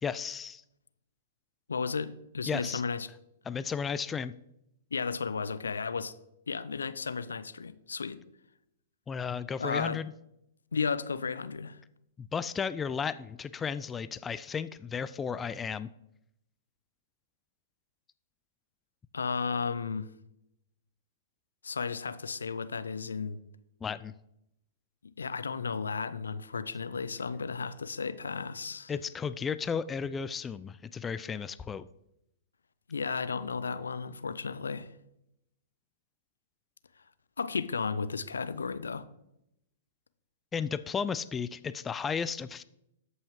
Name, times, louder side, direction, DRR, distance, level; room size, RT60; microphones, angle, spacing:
voice 1, 0.0-0.6 2.5-2.8 3.5-4.3 9.1-10.1 12.2-15.9 23.8-24.1 28.9-31.9 40.5-42.6, left 6 dB, 15° left, 0.3 m, -34 dB
voice 2, 1.7-3.1 4.9-6.1 6.5-8.2 9.6-10.0 10.7-11.8 19.1-20.1 21.6-23.4 25.2-28.9 32.9-34.9 37.4-39.1, left 5 dB, 80° left, 0.5 m, -34 dB
13.5 x 5.5 x 3.1 m
figure-of-eight pair, 110°, 0 cm